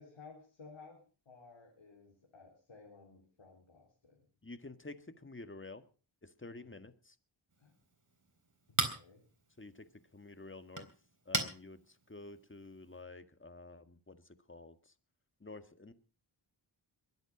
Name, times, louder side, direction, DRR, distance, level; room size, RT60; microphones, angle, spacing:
voice 1, 0.0-4.3 6.5-6.9 7.6-7.8 8.7-9.2, left 4 dB, 85° left, -1 dB, 3.8 m, -57 dB
voice 2, 4.4-5.8 6.2-7.2 9.6-9.9 10.1-10.9 11.3-14.2 14.5-14.9 15.4-15.9, left 2 dB, 25° left, 10 dB, 1.7 m, -50 dB
Chink clink, 7.5-13.0, right 2 dB, 40° right, 3.8 m, -41 dB
22.5 x 8.1 x 6.1 m, 0.39 s
cardioid pair, 45°, 48 cm